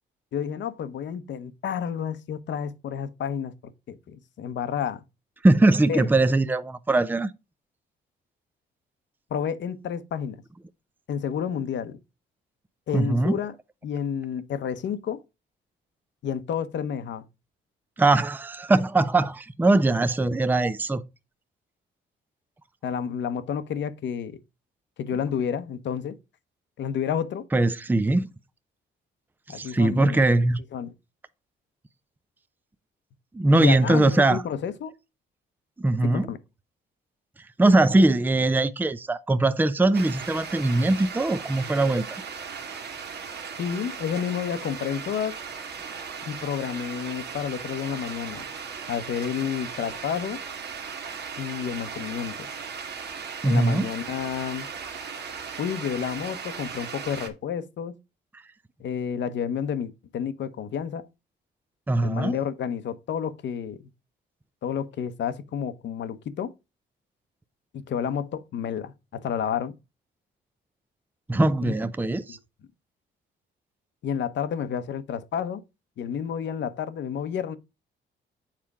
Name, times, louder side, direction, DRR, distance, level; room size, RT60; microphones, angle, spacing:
voice 1, 0.3-5.0 5.9-6.1 9.3-10.4 11.1-12.0 12.9-13.5 13.8-15.2 16.2-17.3 22.8-24.4 25.0-26.2 26.8-27.4 29.5-30.2 30.7-30.9 33.5-34.9 36.0-36.4 43.6-45.4 46.3-48.4 48.9-50.4 51.4-52.5 53.4-54.7 55.6-57.9 58.8-61.1 62.0-63.9 64.6-66.5 67.7-69.7 72.3-72.4 74.0-75.6 76.0-77.6, left 8 dB, 65° left, 0.9 m, -30 dB
voice 2, 5.4-7.3 12.9-13.4 18.0-21.0 27.5-28.3 29.5-30.6 33.3-34.4 35.8-36.3 37.6-42.2 53.4-53.9 61.9-62.4 71.3-72.4, right 2 dB, 10° right, 0.5 m, -21 dB
sound 1, 39.9-57.3, right 6 dB, 60° right, 1.6 m, -37 dB
7.5 x 4.4 x 4.8 m
cardioid pair, 90°, 20 cm